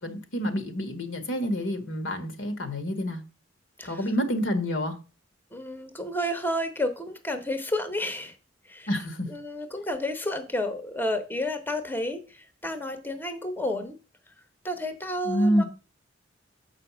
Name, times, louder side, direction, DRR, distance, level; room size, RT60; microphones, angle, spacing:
voice 1, 0.0-3.2 3.8-5.0 8.9-9.3 15.2-15.7, equal, 75° left, 1.7 m, -28 dB
voice 2, 5.5-8.3 8.7-8.9 9.3-14.0 14.6-15.6, left 1 dB, 10° left, 0.9 m, -31 dB
7.5 x 5.0 x 6.1 m
head